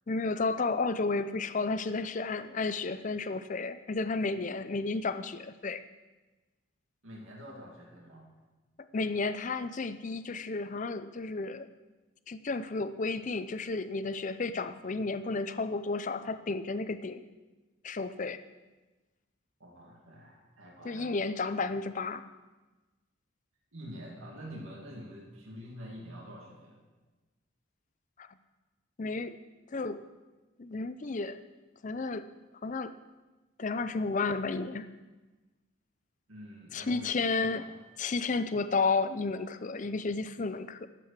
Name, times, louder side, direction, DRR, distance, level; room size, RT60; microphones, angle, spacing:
voice 1, 0.1-5.8 8.9-11.7 12.3-17.2 17.8-18.4 20.8-22.2 29.0-29.4 29.7-30.0 30.6-31.4 31.8-32.3 32.6-32.9 33.6-34.8 36.7-37.6 38.0-40.9, left 3 dB, 35° left, 12 dB, 0.5 m, -32 dB
voice 2, 7.0-8.3 19.6-21.2 23.7-26.8 36.3-37.7, equal, 75° right, -2 dB, 2.2 m, -46 dB
11.0 x 7.6 x 6.5 m, 1.2 s
head